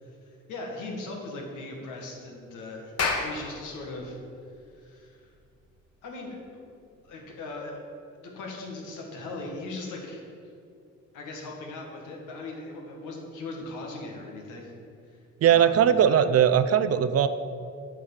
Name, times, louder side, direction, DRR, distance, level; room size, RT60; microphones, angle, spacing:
voice 1, 0.0-4.2 4.7-5.3 6.0-6.6 7.0-7.8 8.2-10.2 11.1-14.7 15.1-16.2, left 2 dB, 85° left, 0 dB, 1.8 m, -39 dB
Clapping, 2.8-7.6, left 4 dB, 55° left, 1.4 m, -35 dB
voice 2, 15.4-17.3, right 9 dB, 55° right, 12 dB, 0.5 m, -20 dB
8.6 x 4.8 x 7.4 m, 2.4 s
cardioid pair, 90°, 30 cm